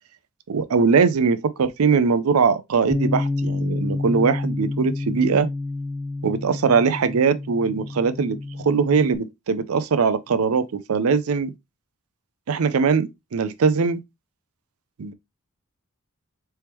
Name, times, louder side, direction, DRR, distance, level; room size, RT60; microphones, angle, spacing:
voice 1, 0.5-5.5 6.2-11.5 12.5-14.0 15.0-15.1, right 5 dB, 80° right, 0.5 m, -21 dB
Bass guitar, 2.9-9.2, left 2 dB, 15° left, 0.4 m, -28 dB
4.4 x 3.5 x 3.0 m
head